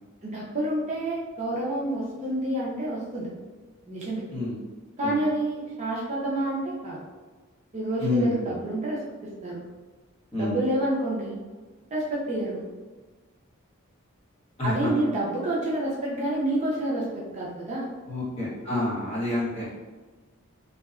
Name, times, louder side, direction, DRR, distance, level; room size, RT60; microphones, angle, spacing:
voice 1, 0.2-3.3 3.9-4.2 5.0-7.0 7.7-9.7 10.3-11.3 11.9-12.6 14.6-17.9, right 1 dB, 35° right, -5 dB, 0.4 m, -28 dB
voice 2, 8.0-8.6 10.3-10.6 14.6-14.9 18.1-19.7, left 2 dB, 30° left, -8 dB, 0.9 m, -28 dB
2.6 x 2.1 x 2.4 m, 1.3 s
head